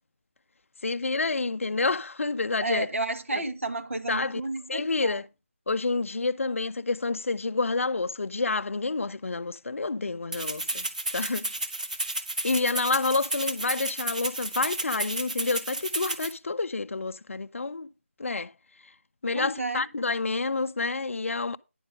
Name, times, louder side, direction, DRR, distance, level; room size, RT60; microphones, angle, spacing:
voice 1, 0.8-2.9 3.3-3.4 4.1-4.4 4.7-5.2 5.7-10.9 11.1-11.5 12.4-17.9 18.2-18.5 18.8-18.9 19.2-21.6, left 3 dB, 70° left, 0.4 m, -28 dB
voice 2, 2.6-5.2 19.3-19.9, right 2 dB, 70° right, 1.3 m, -32 dB
Rattle (instrument), 10.3-16.3, right 2 dB, 35° right, 0.8 m, -32 dB
9.9 x 5.2 x 5.1 m
figure-of-eight pair, 180°, 7 cm